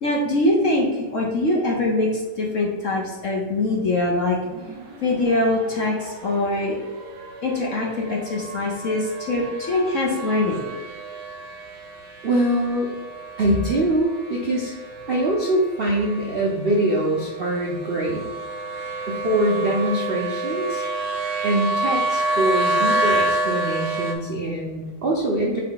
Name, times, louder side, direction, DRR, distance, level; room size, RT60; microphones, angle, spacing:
voice 1, 0.0-4.4 5.0-6.8 7.4-10.7, left 2 dB, 55° left, -2 dB, 0.9 m, -23 dB
sound 1, 4.5-24.1, right 2 dB, 65° right, 1.4 m, -29 dB
voice 2, 12.2-12.9 13.4-14.7 15.1-18.2 19.1-20.8 21.4-25.6, right 1 dB, 80° right, -3 dB, 0.5 m, -23 dB
5.5 x 4.4 x 3.9 m, 1.4 s
omnidirectional pair, 2.3 m